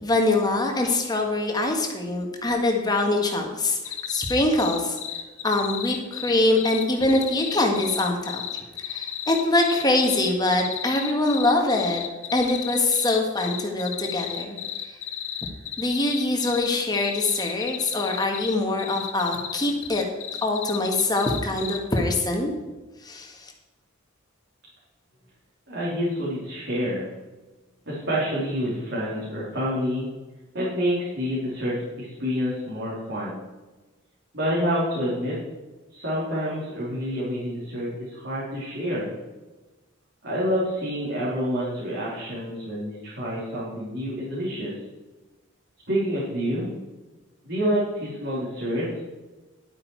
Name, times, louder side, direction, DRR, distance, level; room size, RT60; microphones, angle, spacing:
voice 1, 0.0-5.0 5.4-8.4 8.8-12.0 12.3-14.6 14.8-15.0 15.8-20.0 20.4-22.5 23.0-23.5, left 2 dB, 20° left, 2 dB, 1.7 m, -24 dB
sound 1, 3.9-22.0, left 11 dB, 70° left, 1.1 m, -33 dB
voice 2, 25.7-27.1 27.9-30.1 30.5-33.4 34.3-35.4 35.9-39.1 40.2-44.7 45.9-46.7 47.4-49.0, equal, 55° right, -8 dB, 3.4 m, -28 dB
11.5 x 8.8 x 4.7 m, 1.2 s
head